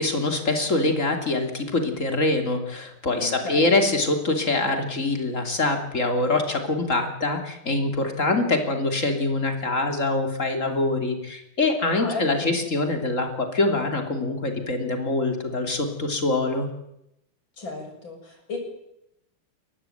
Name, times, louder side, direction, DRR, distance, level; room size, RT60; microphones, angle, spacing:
voice 1, 0.0-16.7, left 2 dB, 35° left, 5 dB, 3.4 m, -24 dB
voice 2, 3.2-3.7 11.9-12.5 17.6-18.6, left 2 dB, 60° left, 1 dB, 7.6 m, -34 dB
23.5 x 17.5 x 9.4 m, 0.85 s
omnidirectional pair, 2.4 m